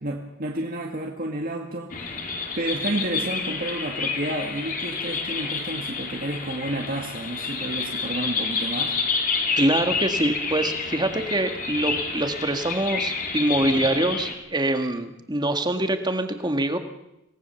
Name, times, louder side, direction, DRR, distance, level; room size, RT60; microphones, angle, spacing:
voice 1, 0.0-1.9 2.6-8.9, right 1 dB, 45° right, 1 dB, 2.1 m, -30 dB
sound 1, 1.9-14.3, left 4 dB, 40° left, 3.4 m, -29 dB
voice 2, 9.6-16.8, right 1 dB, 20° right, 7 dB, 1.8 m, -24 dB
27.0 x 19.0 x 7.1 m, 0.90 s
head